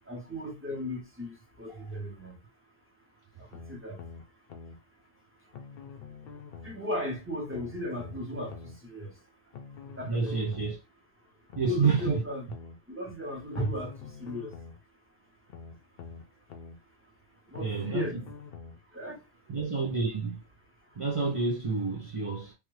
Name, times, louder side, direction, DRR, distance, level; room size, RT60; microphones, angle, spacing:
voice 1, 0.1-2.3 3.4-4.0 6.6-9.1 10.0-10.5 11.6-12.5 12.9-14.5 17.5-18.2 18.9-19.2, left 1 dB, 10° right, 0.9 m, -36 dB
sound 1, 3.5-4.8 5.5-6.8 7.5-8.8 9.5-10.8 11.5-12.8 13.5-14.8 15.5-16.8 17.5-18.8 19.5-19.6, left 5 dB, 60° left, 0.7 m, -46 dB
voice 2, 10.1-10.8 11.6-12.2 17.6-18.2 19.5-20.4 21.0-22.5, right 5 dB, 40° right, 0.5 m, -29 dB
3.2 x 2.3 x 3.1 m
omnidirectional pair, 1.2 m